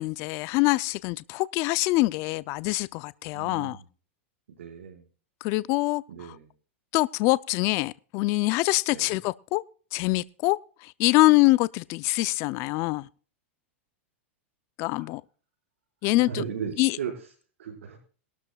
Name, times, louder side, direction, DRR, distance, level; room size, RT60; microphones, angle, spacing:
voice 1, 0.0-3.8 5.4-6.4 6.9-9.6 9.9-13.1 14.8-15.2 16.0-16.4 16.8-17.0, left 21 dB, 45° left, 0.5 m, -24 dB
voice 2, 3.3-3.8 4.6-5.0 6.1-6.5 8.9-9.1 15.0-15.1 16.0-17.1 17.6-18.0, right 7 dB, 80° right, 5.0 m, -36 dB
21.5 x 12.5 x 2.4 m
hypercardioid pair, 130°, 7 cm